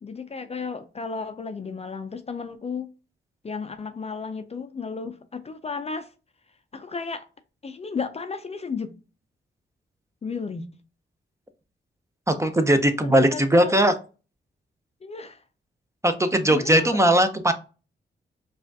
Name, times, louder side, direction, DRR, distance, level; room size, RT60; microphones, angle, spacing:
voice 1, 0.0-2.9 3.4-6.1 6.7-7.3 7.6-8.9 10.2-10.6 13.0-13.7 15.0-15.4 16.5-17.0, left 5 dB, 35° left, 0.4 m, -33 dB
voice 2, 12.3-13.9 16.0-17.5, right 1 dB, 15° right, 0.6 m, -19 dB
4.9 x 2.4 x 2.6 m
cardioid pair, 80°, 19 cm